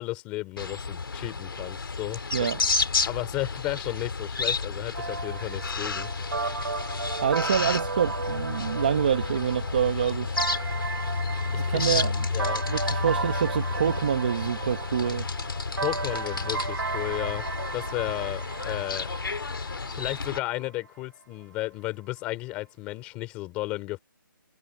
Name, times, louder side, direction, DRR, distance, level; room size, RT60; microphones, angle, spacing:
voice 1, 0.0-2.5 3.0-6.1 11.5-12.0 12.3-12.6 15.7-17.4 17.7-19.1 19.9-24.0, left 19 dB, 10° left, 3.3 m, -33 dB
sound 1, 0.6-20.4, left 4 dB, 85° left, 2.7 m, -31 dB
sound 2, 4.9-20.7, right 4 dB, 70° right, 2.9 m, -35 dB
voice 2, 7.2-10.4 11.6-12.2 12.7-15.3, right 8 dB, 25° right, 1.1 m, -26 dB
hypercardioid pair, 180°, 11 cm